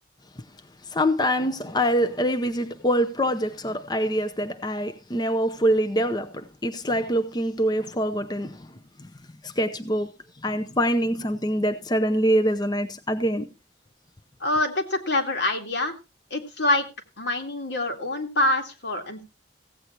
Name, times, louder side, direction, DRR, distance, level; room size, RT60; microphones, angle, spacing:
voice 1, 0.9-8.7 9.0-9.1 9.4-10.1 10.4-13.5, equal, 20° left, 0.7 m, -24 dB
voice 2, 14.4-15.9 16.3-16.9 17.2-19.2, left 2 dB, 80° left, 2.3 m, -25 dB
16.0 x 8.3 x 4.4 m
head